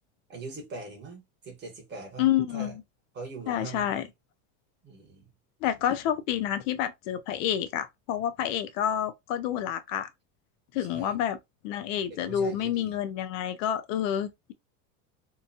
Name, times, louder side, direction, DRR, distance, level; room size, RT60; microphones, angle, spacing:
voice 1, 0.3-2.3 2.5-2.8 3.1-4.1 4.8-5.3 10.8-11.2 12.1-13.0, right 3 dB, 25° right, 1.2 m, -42 dB
voice 2, 2.2-2.8 3.5-4.1 5.6-10.1 10.7-11.4 11.6-14.5, left 10 dB, 70° left, 0.6 m, -29 dB
2.8 x 2.2 x 2.6 m
supercardioid pair, 150°, 40 cm